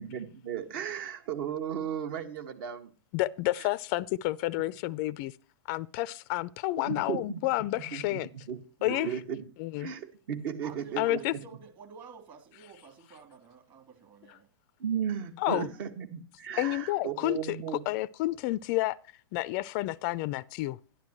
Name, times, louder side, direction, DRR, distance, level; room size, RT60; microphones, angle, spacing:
voice 1, 0.0-2.9 6.8-7.4 7.9-8.2 8.5-9.5 9.8-11.2 14.8-17.8, right 8 dB, 50° right, 1.8 m, -35 dB
voice 2, 3.1-5.4 5.7-8.3 8.8-9.1 9.6-9.9 11.0-11.3 15.4-15.7 16.6-17.6 17.9-19.0 19.3-20.8, left 18 dB, 40° left, 0.4 m, -30 dB
voice 3, 10.6-14.5, right 6 dB, 35° right, 3.3 m, -51 dB
11.5 x 11.5 x 3.0 m
hypercardioid pair, 120°, 14 cm